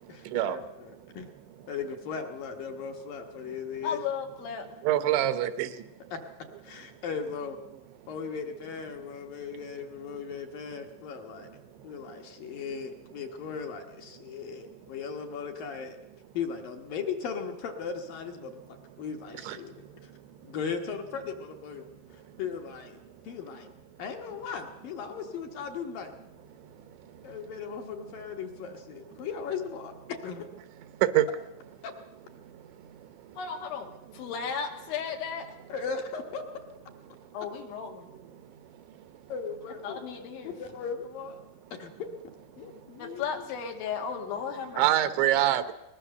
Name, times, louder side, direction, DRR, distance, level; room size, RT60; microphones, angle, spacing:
voice 1, 0.1-1.3 1.7-4.0 6.1-6.2 6.6-7.6 8.1-11.5 11.8-16.0 16.3-19.7 20.0-20.1 20.4-21.9 22.1-23.7 24.0-26.1 27.2-30.5 31.8-31.9 35.7-36.4 39.3-40.0 40.4-41.4 41.7-42.1 42.6-43.3, left 6 dB, 65° left, 4 dB, 2.5 m, -37 dB
voice 2, 3.8-4.7 33.4-33.9 34.1-35.6 37.3-38.1 39.8-40.5 43.0-45.1, left 7 dB, 85° left, 3 dB, 4.3 m, -35 dB
voice 3, 4.8-5.7 19.5-19.6 31.2-31.3 44.8-45.7, right 13 dB, 80° right, 12 dB, 3.3 m, -24 dB
21.0 x 20.0 x 6.7 m, 0.93 s
omnidirectional pair, 5.2 m